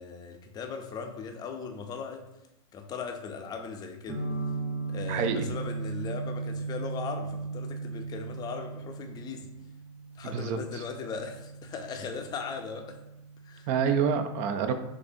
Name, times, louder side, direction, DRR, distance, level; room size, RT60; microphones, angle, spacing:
voice 1, 0.0-2.3 2.7-4.2 4.9-9.5 10.1-13.0 13.4-13.7, left 5 dB, 25° left, 4 dB, 0.5 m, -38 dB
sound 1, 4.1-13.9, right 3 dB, 15° right, 0.8 m, -37 dB
voice 2, 5.1-5.4 10.2-10.8 13.7-14.7, right 6 dB, 45° right, 8 dB, 0.5 m, -27 dB
6.6 x 2.6 x 2.6 m, 0.89 s
supercardioid pair, 140°, 16 cm